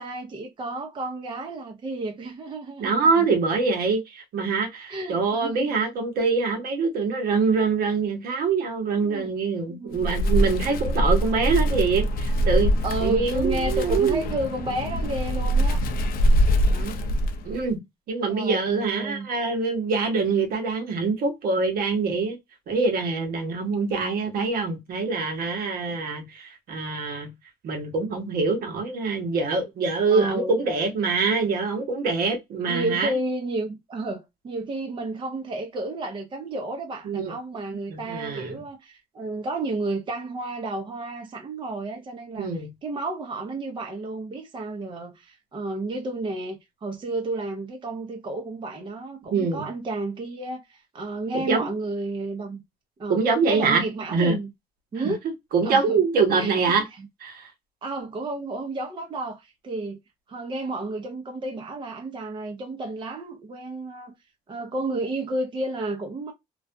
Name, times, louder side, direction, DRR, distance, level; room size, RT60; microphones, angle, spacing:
voice 1, 0.0-3.3 4.9-5.7 9.0-9.3 9.7-10.1 10.5-10.8 12.8-15.8 16.4-16.6 18.3-19.3 30.1-30.6 32.7-42.5 42.8-52.6 53.0-54.5 54.9-55.2 55.6-56.0 56.3-56.8 57.8-60.0 60.3-64.1 64.5-66.3, right 2 dB, 30° right, 0.6 m, -31 dB
voice 2, 2.8-12.7 13.0-14.2 16.7-17.1 17.4-17.8 18.1-22.4 22.7-27.3 27.6-33.1 37.0-37.3 37.9-38.6 42.4-42.7 49.3-49.7 51.3-51.6 53.1-53.8 54.1-54.4 55.5-56.8 57.2-57.5, right 4 dB, 60° right, 0.9 m, -24 dB
Wind, 9.9-17.7, equal, 60° left, 0.5 m, -23 dB
2.4 x 2.2 x 2.5 m
cardioid pair, 110°, 17 cm